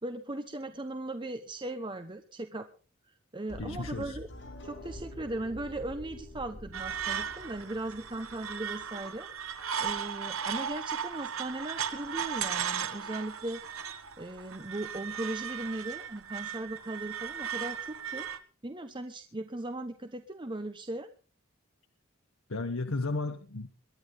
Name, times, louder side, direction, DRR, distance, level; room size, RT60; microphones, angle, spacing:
voice 1, 0.0-2.7 3.0-4.3 4.6-13.6 14.2-18.3 18.6-21.1, right 2 dB, 25° right, 8 dB, 1.0 m, -38 dB
sound 1, 3.5-9.5, left 1 dB, 60° left, 7.4 m, -47 dB
voice 2, 3.6-4.2 22.5-23.7, left 3 dB, 80° left, 7 dB, 1.2 m, -34 dB
sound 2, 6.7-18.4, right 7 dB, 85° right, 1.6 m, -36 dB
22.5 x 11.0 x 3.9 m, 0.37 s
head